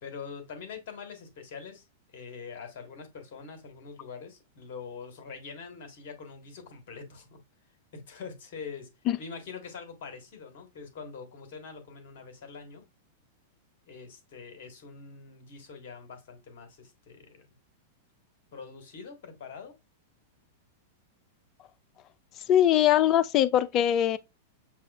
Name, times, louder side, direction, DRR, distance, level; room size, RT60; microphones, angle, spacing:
voice 1, 0.0-7.4 7.9-8.9 9.2-12.9 13.9-17.5 18.5-19.7, left 5 dB, 55° left, 1.5 m, -44 dB
voice 2, 22.5-24.2, left 11 dB, 35° left, 0.4 m, -22 dB
7.0 x 2.4 x 2.3 m
figure-of-eight pair, 95°, 0 cm